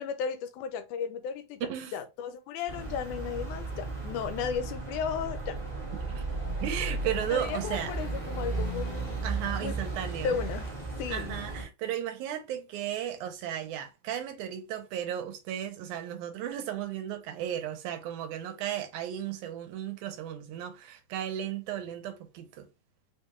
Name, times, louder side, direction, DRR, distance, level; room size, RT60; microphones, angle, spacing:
voice 1, 0.0-1.6 1.9-5.6 7.3-9.3 9.6-9.8 10.2-10.7 11.0-11.4, left 7 dB, 90° left, 2.1 m, -34 dB
sound 1, 2.7-11.6, right 3 dB, 35° right, 0.9 m, -35 dB
voice 2, 6.6-7.9 9.2-10.4 11.1-22.7, right 10 dB, 80° right, 2.1 m, -35 dB
4.9 x 2.3 x 2.9 m
omnidirectional pair, 3.5 m